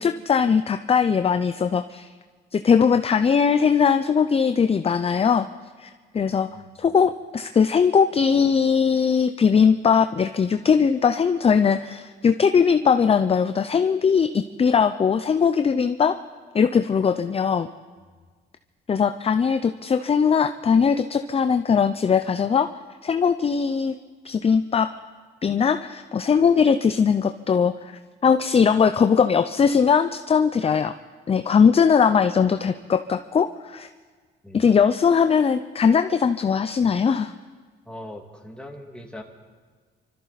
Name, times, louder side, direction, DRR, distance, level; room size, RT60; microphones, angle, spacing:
voice 1, 0.0-2.1 2.5-5.5 5.8-6.5 6.8-16.2 16.5-17.7 18.9-22.7 23.0-23.9 24.2-24.9 25.4-27.9 28.2-30.9 31.3-33.9 34.5-37.3, left 6 dB, 30° left, 8 dB, 0.5 m, -20 dB
voice 2, 37.9-39.2, left 1 dB, 5° left, 1 dB, 2.2 m, -41 dB
24.5 x 13.5 x 4.1 m, 1.5 s
cardioid pair, 90°, 20 cm